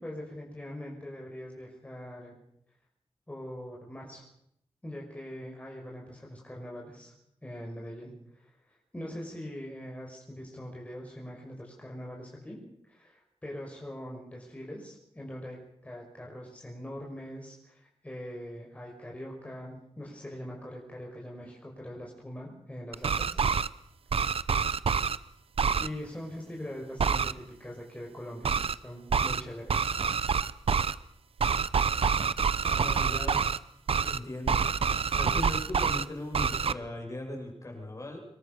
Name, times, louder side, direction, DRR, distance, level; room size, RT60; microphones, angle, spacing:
voice 1, 0.0-2.4 3.3-4.2 4.8-7.1 7.4-12.6 12.9-23.4 25.8-29.9, equal, 15° left, -2 dB, 5.6 m, -42 dB
sound 1, 22.9-23.7 24.1-25.2 25.6-25.9 27.0-27.3 28.4-28.7 29.1-29.4 29.7-30.9 31.4-33.6 33.9-34.2 34.5-36.0 36.3-36.7, right 6 dB, 65° right, 0.8 m, -27 dB
voice 2, 32.6-33.6 34.0-34.7 35.2-38.2, left 1 dB, 30° left, 1 dB, 7.5 m, -38 dB
26.0 x 22.5 x 6.8 m, 0.74 s
wide cardioid pair, 150°, 10 cm